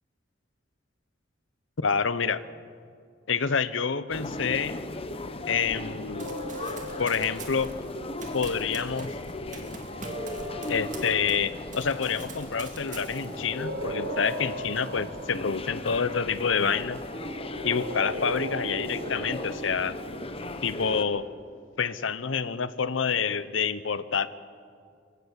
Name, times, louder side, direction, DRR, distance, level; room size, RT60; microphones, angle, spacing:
voice 1, 1.8-2.4 3.3-4.8 5.5-6.3 7.0-7.7 8.3-9.1 10.7-17.0 17.6-19.9 20.6-21.2 21.8-24.3, left 6 dB, 85° left, 15 dB, 0.8 m, -27 dB
sound 1, 4.1-21.0, left 2 dB, 30° left, 1.0 m, -37 dB
sound 2, 5.6-8.1 9.8-11.6 13.0-15.7 17.1-21.6, equal, 70° right, 5.1 m, -39 dB
Run, 6.2-11.5 11.7-13.5, right 4 dB, 40° right, 2.4 m, -44 dB
25.0 x 15.0 x 8.4 m, 2.3 s
head